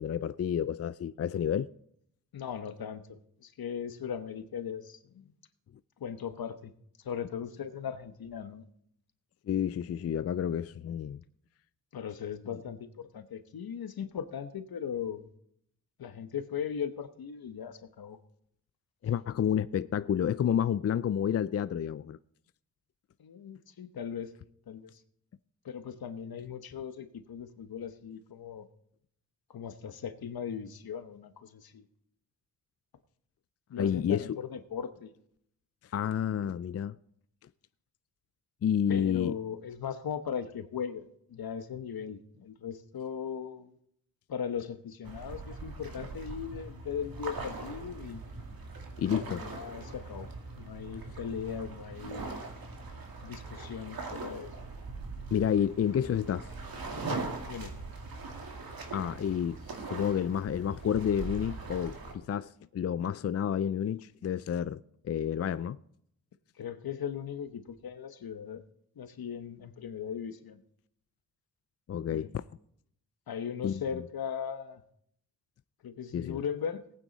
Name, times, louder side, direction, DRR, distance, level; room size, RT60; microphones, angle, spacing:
voice 1, 0.0-1.7 9.5-11.2 19.0-22.2 33.8-34.3 35.8-37.0 38.6-39.3 49.0-49.4 55.3-56.5 58.9-59.6 59.9-65.8 71.9-72.4 73.6-73.8 76.1-76.4, left 9 dB, 40° left, 0.4 m, -30 dB
voice 2, 2.3-5.3 6.0-6.7 7.0-8.6 11.9-15.3 16.0-18.2 23.2-24.3 24.7-25.0 25.6-28.7 29.5-31.8 33.7-35.1 38.9-43.7 44.3-48.2 49.3-50.3 50.5-52.2 53.2-54.5 57.4-57.7 66.6-68.6 69.0-70.6 72.1-72.3 73.3-74.8 75.8-76.8, left 7 dB, 70° left, 1.2 m, -38 dB
sound 1, 45.0-62.1, right 3 dB, 70° right, 2.4 m, -41 dB
19.0 x 9.2 x 4.1 m
wide cardioid pair, 105°, 37 cm